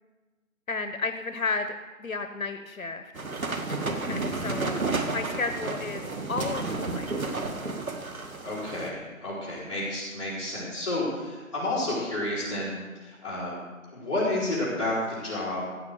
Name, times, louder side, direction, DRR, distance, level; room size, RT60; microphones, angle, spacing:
voice 1, 0.7-3.1 4.1-6.0 6.3-7.1, left 3 dB, 75° left, 8 dB, 1.0 m, -33 dB
sound 1, 3.1-8.9, right 3 dB, 80° right, 1.9 m, -31 dB
voice 2, 8.4-13.5 13.9-15.7, left 1 dB, 20° left, -9 dB, 4.8 m, -30 dB
16.0 x 6.5 x 7.6 m, 1.2 s
figure-of-eight pair, 175°, 41 cm